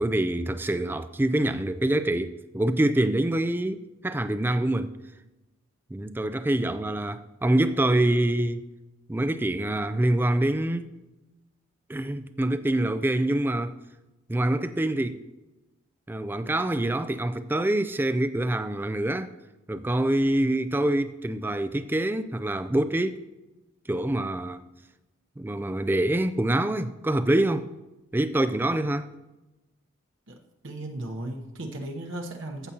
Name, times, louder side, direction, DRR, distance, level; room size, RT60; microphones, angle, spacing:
voice 1, 0.0-4.9 5.9-8.6 9.1-10.9 11.9-13.8 14.3-15.2 16.1-19.3 19.7-23.2 23.9-24.6 25.4-27.7 28.1-29.1, right 1 dB, 10° right, 0.3 m, -25 dB
voice 2, 30.6-32.7, right 1 dB, 60° right, 0.9 m, -36 dB
15.0 x 6.8 x 2.8 m
head